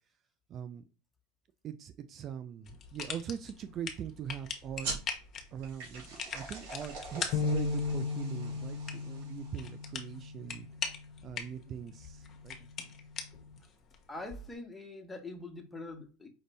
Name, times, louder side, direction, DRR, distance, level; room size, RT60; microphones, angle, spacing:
voice 1, 0.5-0.8 1.6-4.9 5.5-10.7 11.2-12.6, right 9 dB, 40° right, 10 dB, 0.3 m, -42 dB
sound 1, 2.6-14.6, left 5 dB, 35° left, 0.9 m, -43 dB
sound 2, 4.8-9.9, right 3 dB, 65° right, 2.5 m, -44 dB
sound 3, 7.3-13.6, left 3 dB, 55° left, 0.6 m, -37 dB
voice 2, 14.1-16.3, left 2 dB, 10° left, 3 dB, 1.1 m, -44 dB
5.1 x 2.6 x 3.4 m, 0.33 s
hypercardioid pair, 85°, 0 cm